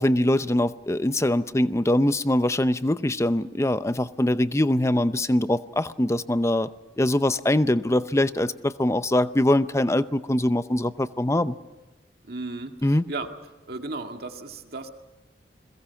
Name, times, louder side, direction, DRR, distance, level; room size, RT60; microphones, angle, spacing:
voice 1, 0.0-6.7 7.0-11.6 12.8-13.0, left 1 dB, 15° left, 13 dB, 0.7 m, -23 dB
voice 2, 12.2-13.3 13.7-14.9, right 3 dB, 60° right, 4 dB, 2.1 m, -35 dB
29.5 x 22.0 x 5.9 m, 1.1 s
head